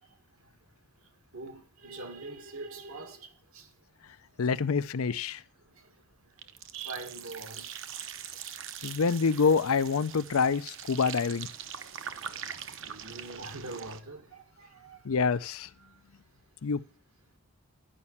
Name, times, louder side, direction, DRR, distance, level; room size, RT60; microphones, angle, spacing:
voice 1, 1.3-3.7 6.7-7.7 11.8-11.9 12.3-12.4 12.8-15.0 15.8-16.0, right 3 dB, 80° right, 1.9 m, -43 dB
voice 2, 4.4-5.4 8.8-11.5 15.0-15.7 16.6-16.8, left 5 dB, 80° left, 0.5 m, -26 dB
sound 1, 6.4-14.0, right 8 dB, 60° right, 0.8 m, -42 dB
11.5 x 5.5 x 7.2 m
head